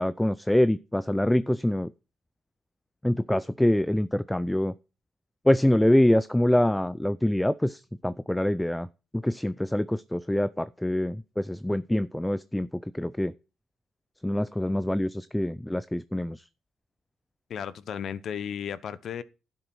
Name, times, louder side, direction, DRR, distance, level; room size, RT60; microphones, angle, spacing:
voice 1, 0.0-1.9 3.0-4.7 5.5-8.9 9.2-12.7 12.9-13.3 14.2-16.4, left 1 dB, 5° left, 0.4 m, -25 dB
voice 2, 17.5-19.2, left 8 dB, 65° left, 0.8 m, -34 dB
11.5 x 8.0 x 4.6 m
cardioid pair, 90°, 0 cm